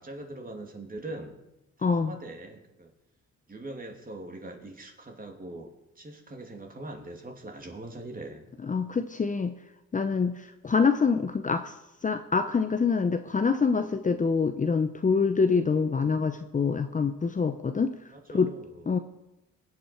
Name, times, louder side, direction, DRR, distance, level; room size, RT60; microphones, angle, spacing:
voice 1, 0.0-1.4 1.8-2.9 3.5-8.5 18.1-19.0, right 2 dB, 30° right, 3 dB, 2.7 m, -42 dB
voice 2, 1.8-2.1 8.6-9.5 9.9-11.7 12.0-17.9 18.3-18.5 18.9-19.0, left 5 dB, 25° left, 8 dB, 0.8 m, -25 dB
23.0 x 8.5 x 4.5 m, 0.95 s
cardioid pair, 90°, 30 cm